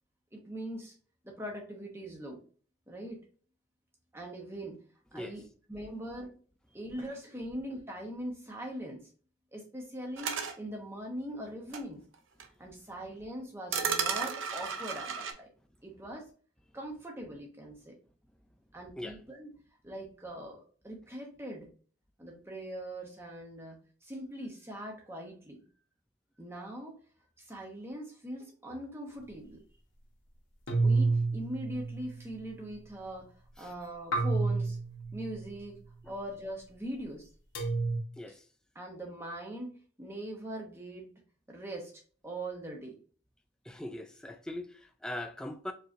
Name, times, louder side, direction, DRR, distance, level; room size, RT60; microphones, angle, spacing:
voice 1, 0.3-0.9 1.2-2.4 2.9-3.2 4.1-4.8 5.1-5.4 5.7-6.3 6.7-9.0 9.5-12.0 12.6-15.5 15.8-16.3 16.7-18.0 18.7-19.5 19.8-21.7 22.2-25.6 26.4-27.0 27.4-29.6 30.8-33.3 33.6-34.8 35.1-35.8 36.1-37.3 38.7-39.7 40.0-41.1 41.5-41.9 42.2-43.0, right 1 dB, 10° right, 0.9 m, -41 dB
sound 1, 10.2-10.5 11.7-11.8 12.4-12.5 13.7-15.3, right 6 dB, 80° right, 0.6 m, -33 dB
sound 2, 30.7-32.4 34.1-35.5 37.5-38.0, right 3 dB, 80° left, 1.1 m, -29 dB
voice 2, 43.7-45.7, left 1 dB, 5° left, 0.3 m, -41 dB
4.6 x 3.0 x 2.6 m
head